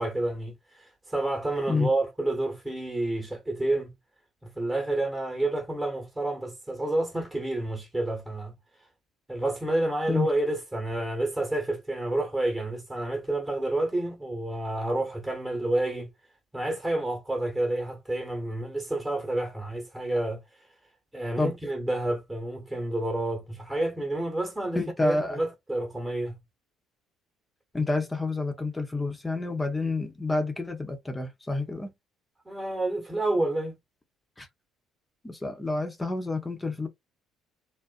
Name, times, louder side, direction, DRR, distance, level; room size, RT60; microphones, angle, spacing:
voice 1, 0.0-3.9 4.5-8.5 9.3-16.1 16.5-20.4 21.1-26.3 32.4-33.8, right 2 dB, 10° right, 1.1 m, -29 dB
voice 2, 24.7-25.4 27.7-31.9 34.4-34.5 35.2-36.9, left 2 dB, 15° left, 0.7 m, -29 dB
2.4 x 2.0 x 2.4 m
hypercardioid pair, 55°, 0 cm